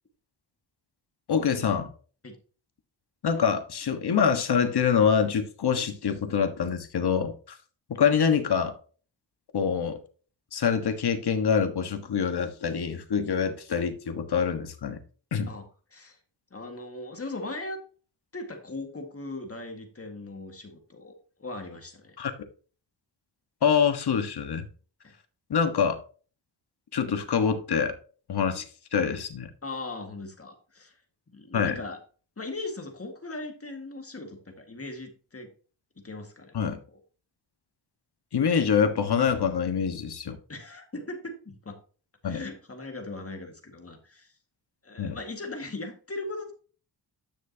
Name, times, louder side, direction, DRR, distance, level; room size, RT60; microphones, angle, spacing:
voice 1, 1.3-1.9 3.2-7.6 7.9-8.7 9.5-10.0 10.5-15.0 15.3-15.5 22.2-22.3 23.6-24.7 25.5-26.0 26.9-27.9 28.3-28.6 28.9-29.5 31.5-31.8 36.5-36.8 38.3-40.4 42.2-42.4 45.0-45.2, left 7 dB, 60° left, 1.5 m, -25 dB
voice 2, 16.5-17.8 18.3-22.2 25.0-25.1 29.6-31.0 31.3-32.0 32.4-35.5 36.0-36.6 40.5-41.8 42.2-44.4 44.8-46.5, left 2 dB, 30° left, 1.9 m, -39 dB
10.0 x 6.3 x 2.9 m
cardioid pair, 70°, 45 cm